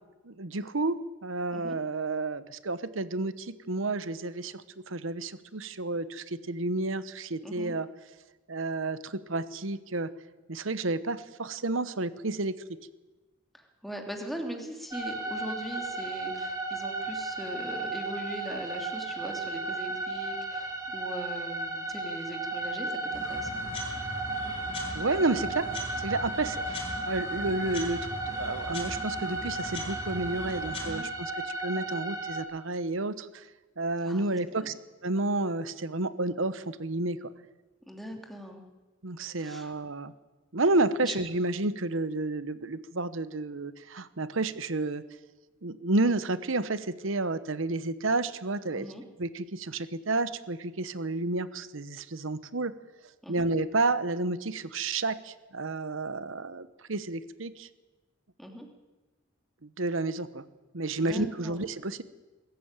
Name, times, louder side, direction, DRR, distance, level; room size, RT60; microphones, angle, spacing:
voice 1, 0.2-7.9 8.5-10.1 10.5-12.8 24.9-25.7 26.0-33.5 33.8-34.7 35.0-37.2 39.0-40.1 40.5-45.0 45.6-48.9 49.2-52.7 53.3-57.7 59.6-60.4 60.7-62.0, right 2 dB, 70° right, 14 dB, 1.1 m, -31 dB
voice 2, 7.4-7.7 13.5-23.6 26.2-26.3 30.8-31.1 34.0-34.7 37.9-38.6 39.4-39.7 41.0-41.2 48.7-49.0 53.2-53.5 58.4-58.7 61.0-61.6, equal, ahead, 3 dB, 2.8 m, -40 dB
sound 1, 14.9-32.4, right 2 dB, 15° right, 2.7 m, -35 dB
sound 2, 23.1-30.9, left 1 dB, 30° left, 7.4 m, -40 dB
22.0 x 14.0 x 9.0 m, 1.2 s
head